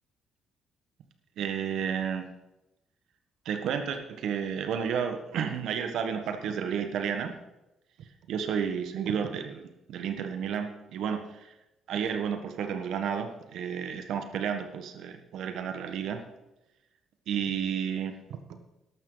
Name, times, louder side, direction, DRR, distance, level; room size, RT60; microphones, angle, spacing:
voice 1, 1.4-2.2 3.4-7.3 8.3-11.5 11.9-16.2 17.3-18.6, right 7 dB, 80° right, 7 dB, 1.5 m, -32 dB
13.0 x 12.0 x 4.1 m, 0.95 s
cardioid pair, 90°, 0 cm